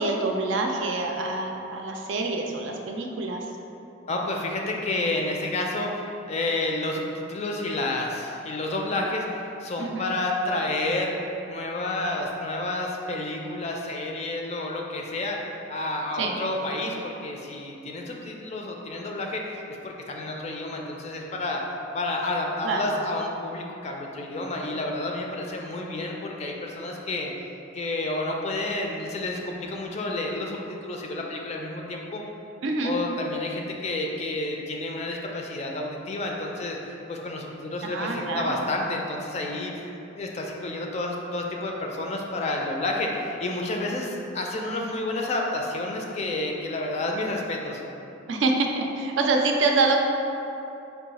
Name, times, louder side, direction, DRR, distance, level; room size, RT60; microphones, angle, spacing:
voice 1, 0.0-3.4 9.8-10.1 16.2-16.4 22.6-23.0 32.6-33.0 37.8-38.6 48.3-49.9, right 3 dB, 65° right, 2 dB, 0.4 m, -26 dB
voice 2, 4.1-15.4 15.7-19.4 19.8-21.6 21.9-27.3 27.7-32.2 32.8-36.8 37.1-47.8, left 2 dB, 35° left, 0 dB, 0.4 m, -30 dB
4.5 x 2.3 x 4.0 m, 2.8 s
head